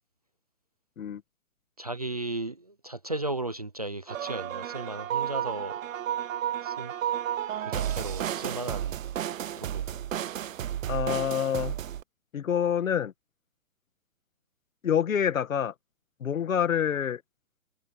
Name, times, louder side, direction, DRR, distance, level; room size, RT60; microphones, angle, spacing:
voice 1, 1.8-5.8 6.6-6.9 7.6-9.0 9.6-10.0, right 2 dB, 30° right, 0.4 m, -35 dB
sound 1, 4.1-12.0, right 10 dB, 75° right, 0.7 m, -32 dB
voice 2, 10.9-11.7 12.3-13.1 14.8-15.7 16.2-17.2, left 8 dB, 80° left, 1.7 m, -27 dB
hypercardioid pair, 175°, 39 cm